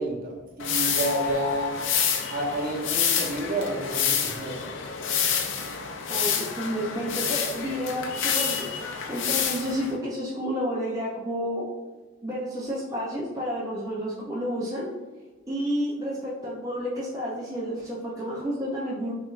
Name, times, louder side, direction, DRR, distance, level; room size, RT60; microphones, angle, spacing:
voice 1, 0.0-1.7 2.3-4.7, right 1 dB, 45° right, -2 dB, 0.9 m, -30 dB
sound 1, 0.6-9.9, left 7 dB, 65° left, 0.5 m, -28 dB
voice 2, 6.1-11.7 12.2-14.9 15.5-19.1, equal, 15° right, -6 dB, 0.5 m, -30 dB
5.8 x 2.5 x 2.4 m, 1.3 s
head